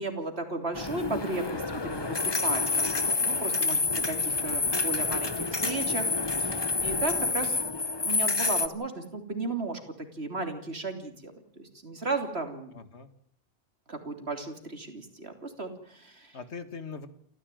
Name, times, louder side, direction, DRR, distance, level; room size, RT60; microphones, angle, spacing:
voice 1, 0.0-6.1 6.4-7.6 8.0-11.3 11.6-12.7 13.9-16.4, right 3 dB, 65° right, 7 dB, 3.5 m, -35 dB
sound 1, 0.7-8.7, left 3 dB, 25° left, 1.0 m, -28 dB
voice 2, 12.7-13.1 16.3-17.1, left 5 dB, 70° left, 11 dB, 2.1 m, -42 dB
28.5 x 14.5 x 9.2 m, 0.66 s
omnidirectional pair, 1.2 m